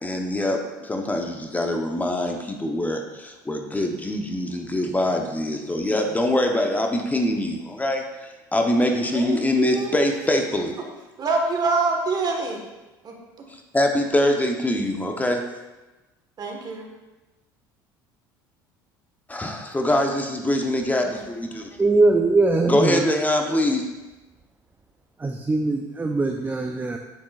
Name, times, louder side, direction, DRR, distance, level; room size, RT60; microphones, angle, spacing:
voice 1, 0.0-10.8 13.7-15.4 19.3-21.7 22.7-23.9, left 1 dB, 15° left, 3 dB, 0.9 m, -24 dB
voice 2, 9.1-9.9 11.2-12.6 13.0-13.1 16.4-16.9, right 4 dB, 40° right, 1 dB, 1.5 m, -25 dB
voice 3, 21.8-23.1 25.2-27.0, right 3 dB, 15° right, 3 dB, 0.6 m, -21 dB
7.4 x 7.0 x 2.4 m, 1.1 s
hypercardioid pair, 70°, 11 cm